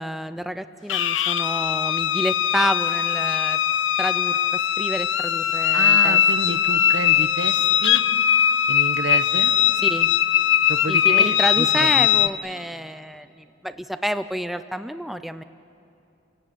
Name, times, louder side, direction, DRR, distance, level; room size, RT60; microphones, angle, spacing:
voice 1, 0.0-3.6 4.0-4.4 4.8-6.2 6.5-6.6 9.8-10.1 10.9-15.4, equal, ahead, 11 dB, 0.5 m, -29 dB
sound 1, 0.9-12.3, left 10 dB, 65° left, 0.6 m, -20 dB
voice 2, 5.7-8.0 8.7-9.5 10.7-12.1, right 3 dB, 70° right, 10 dB, 1.1 m, -30 dB
29.5 x 16.5 x 9.7 m, 2.8 s
head